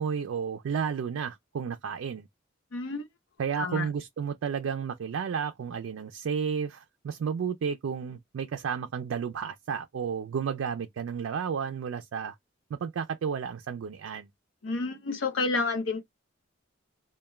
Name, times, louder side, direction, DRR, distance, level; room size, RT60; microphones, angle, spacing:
voice 1, 0.0-2.2 3.4-12.4 12.7-14.3, right 7 dB, 90° right, 0.4 m, -32 dB
voice 2, 2.7-3.1 3.6-3.9 14.6-16.0, left 3 dB, 80° left, 0.7 m, -30 dB
2.2 x 2.1 x 3.1 m
head